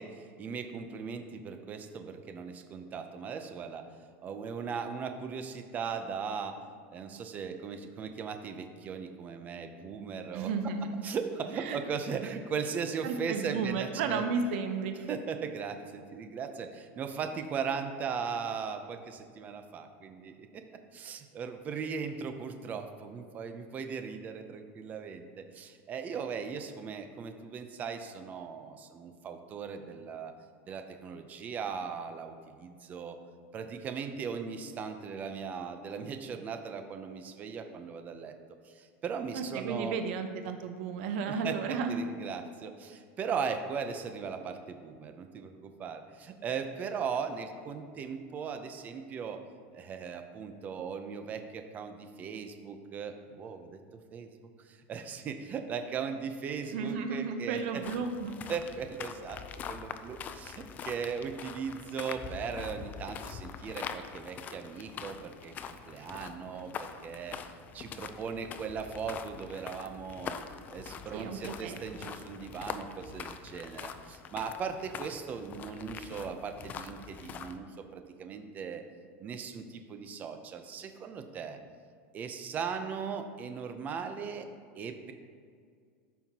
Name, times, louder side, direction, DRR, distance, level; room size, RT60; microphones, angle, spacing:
voice 1, 0.0-3.9 4.2-6.6 6.9-10.7 11.0-14.2 15.1-20.6 20.9-30.3 30.7-33.2 33.5-38.3 38.6-40.0 41.2-49.4 49.7-53.8 54.1-57.8 58.5-59.4 59.7-70.4 70.7-78.8 79.2-81.6 82.1-84.5 84.7-85.1, right 6 dB, 25° right, 7 dB, 0.6 m, -38 dB
voice 2, 10.3-11.0 11.5-11.8 13.0-14.9 39.3-42.0 56.7-58.3 71.1-72.1, right 5 dB, 60° right, 6 dB, 0.8 m, -33 dB
Footsteps on gravel by canal, 57.8-77.6, left 7 dB, 25° left, 0.3 m, -44 dB
13.5 x 5.6 x 2.9 m, 2.1 s
supercardioid pair, 165°, 7 cm